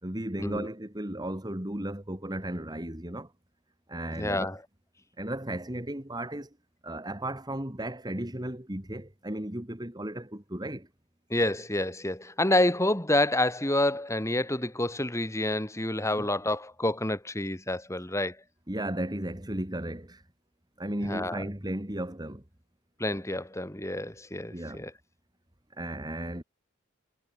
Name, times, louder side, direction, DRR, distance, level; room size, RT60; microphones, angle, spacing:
voice 1, 0.0-3.3 3.9-4.5 5.2-6.6 6.8-10.9 16.2-16.3 18.7-20.2 20.8-22.4 24.5-24.9 25.7-26.4, right 1 dB, 20° right, 2.3 m, -35 dB
voice 2, 4.2-4.6 11.3-18.4 21.1-21.4 23.0-24.9, left 1 dB, 15° left, 3.2 m, -28 dB
head